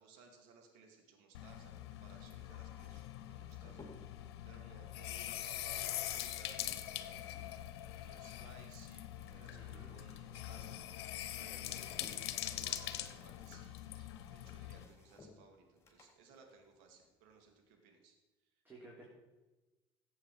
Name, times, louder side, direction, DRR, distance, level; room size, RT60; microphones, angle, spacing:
voice 1, 0.0-7.2 7.9-11.1 11.4-18.2 18.4-18.5, right 4 dB, 70° right, 3 dB, 2.5 m, -61 dB
sound 1, 1.3-14.8, left 13 dB, 80° left, 0.9 m, -44 dB
sound 2, 3.2-4.3 5.4-7.7 8.0-9.9 10.1-11.0 11.5-17.6, left 3 dB, 20° left, 3.8 m, -61 dB
voice 2, 9.5-9.9 11.3-12.3 18.6-19.1, right 2 dB, 15° right, -4 dB, 3.6 m, -57 dB
14.5 x 8.3 x 4.9 m, 1.2 s
hypercardioid pair, 75°, 13 cm